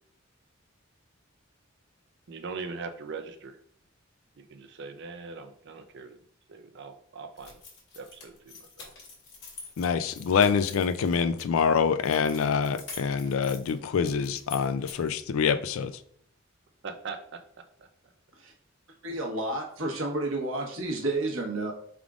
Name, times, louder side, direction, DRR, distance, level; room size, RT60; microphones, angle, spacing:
voice 1, 2.3-3.6 4.4-6.2 6.5-7.6 8.0-8.9 16.8-17.4 17.8-17.9, right 4 dB, 60° right, 0.5 m, -41 dB
sound 1, 7.4-11.4 12.0-15.2, left 4 dB, 60° left, 1.5 m, -47 dB
voice 2, 9.8-15.9, left 6 dB, 80° left, 0.4 m, -25 dB
voice 3, 19.0-21.7, right 2 dB, 80° right, 1.1 m, -31 dB
4.8 x 3.6 x 2.4 m
head